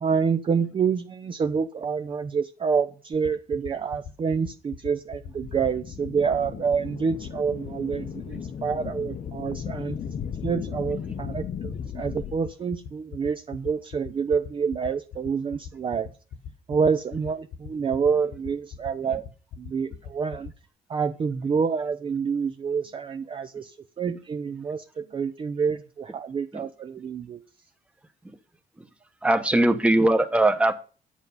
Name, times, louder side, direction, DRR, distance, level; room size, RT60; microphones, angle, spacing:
voice 1, 0.0-10.0 10.4-16.1 16.7-19.2 19.6-20.5 20.9-27.4, right 6 dB, 30° right, 8 dB, 0.6 m, -27 dB
sound 1, 3.1-20.5, left 8 dB, 65° left, 1.4 m, -39 dB
sound 2, 5.1-12.4, left 8 dB, 40° left, 0.8 m, -36 dB
voice 2, 29.2-30.7, right 1 dB, 5° right, 8 dB, 1.0 m, -20 dB
9.1 x 8.2 x 5.4 m, 0.37 s
cardioid pair, 155°, 16 cm